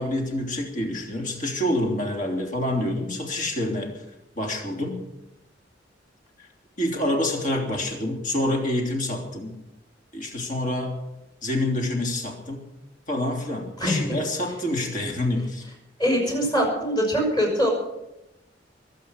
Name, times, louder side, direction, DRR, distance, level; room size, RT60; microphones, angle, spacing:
voice 1, 0.0-4.0 4.3-5.0 6.8-9.5 10.1-10.9 11.4-12.6 13.1-15.7, left 1 dB, 50° left, 2 dB, 3.3 m, -27 dB
voice 2, 13.8-14.2 16.0-17.7, equal, 25° left, 1 dB, 5.9 m, -23 dB
22.0 x 8.5 x 6.5 m, 0.93 s
head